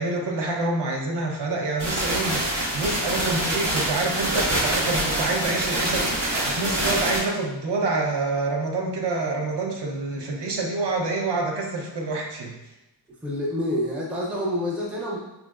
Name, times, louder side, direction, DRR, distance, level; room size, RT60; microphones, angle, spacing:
voice 1, 0.0-12.5, right 3 dB, 60° right, 1 dB, 0.6 m, -27 dB
sound 1, 1.8-7.2, right 1 dB, 85° right, 1.2 m, -25 dB
voice 2, 13.2-15.2, left 1 dB, 5° right, -3 dB, 0.4 m, -27 dB
3.8 x 2.2 x 2.3 m, 0.96 s
wide cardioid pair, 130°, 46 cm